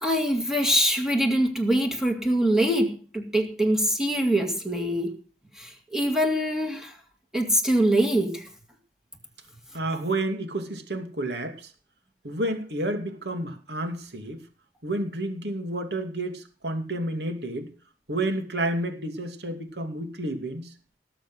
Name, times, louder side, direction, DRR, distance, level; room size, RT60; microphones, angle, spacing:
voice 1, 0.0-5.1 5.6-6.9 7.3-8.5, equal, 5° right, 2.3 m, -24 dB
voice 2, 9.7-11.7 12.2-14.4 14.8-17.7 18.1-20.7, right 1 dB, 70° right, 2.7 m, -30 dB
19.0 x 7.0 x 6.4 m
head